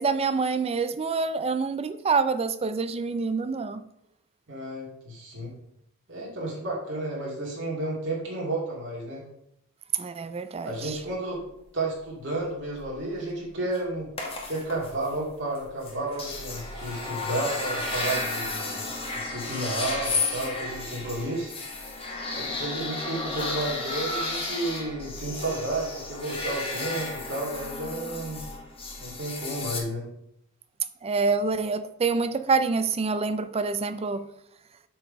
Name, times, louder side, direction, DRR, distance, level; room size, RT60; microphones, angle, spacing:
voice 1, 0.0-3.8 10.0-10.7 31.0-34.2, right 4 dB, 25° right, 12 dB, 0.4 m, -26 dB
voice 2, 4.5-5.5 6.1-9.2 10.6-11.4 11.7-14.1 14.5-18.8 19.1-21.5 22.3-28.4 29.0-30.0, right 2 dB, 55° right, -4 dB, 2.2 m, -32 dB
sound 1, 12.8-13.0 13.7-13.8 14.2-15.1 15.6-15.7 15.8-29.8, left 3 dB, 25° left, 1.3 m, -33 dB
6.6 x 4.6 x 5.2 m, 0.78 s
head